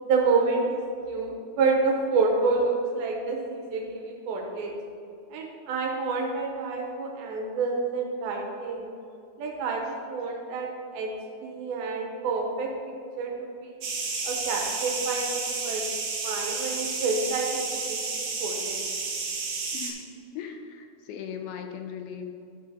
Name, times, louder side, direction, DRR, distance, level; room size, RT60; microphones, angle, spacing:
voice 1, 0.0-4.7 5.3-8.9 9.4-11.1 11.4-13.8 14.2-15.8 16.2-18.8, right 4 dB, 85° right, 1 dB, 2.9 m, -28 dB
sound 1, 13.8-19.9, right 4 dB, 60° right, 1.9 m, -31 dB
voice 2, 19.7-20.1 20.3-22.4, left 7 dB, 90° left, 6 dB, 2.6 m, -38 dB
12.0 x 4.1 x 5.1 m, 2.5 s
omnidirectional pair, 4.3 m